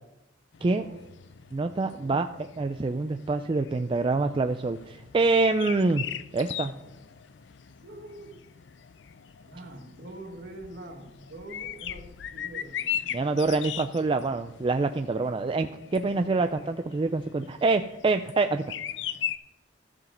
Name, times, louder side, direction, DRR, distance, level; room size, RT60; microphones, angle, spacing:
sound 1, 0.5-19.4, left 10 dB, 65° left, 0.4 m, -40 dB
voice 1, 0.6-1.0 1.8-2.4 6.6-7.0 7.8-8.4 9.4-13.1 15.1-15.5 16.0-16.6, right 1 dB, 55° right, 3 dB, 1.6 m, -45 dB
voice 2, 1.5-2.3 2.6-6.0 6.3-6.7 13.1-18.6, right 3 dB, 25° right, 7 dB, 0.3 m, -26 dB
13.5 x 4.9 x 6.7 m, 0.90 s
head